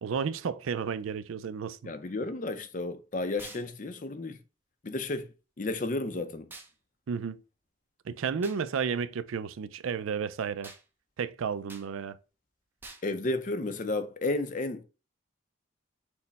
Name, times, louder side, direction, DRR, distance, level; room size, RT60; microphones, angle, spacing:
voice 1, 0.0-1.9 7.1-7.4 8.1-10.7 11.2-12.2, right 6 dB, 85° right, 0.4 m, -32 dB
voice 2, 1.8-4.4 4.8-5.3 5.6-6.5 13.0-14.8, left 2 dB, 40° left, 0.5 m, -32 dB
sound 1, 3.4-3.7 6.5-6.7 8.4-8.6 10.6-10.8 11.7-11.9 12.8-13.1, right 3 dB, 10° right, 0.5 m, -47 dB
6.3 x 2.1 x 4.0 m
head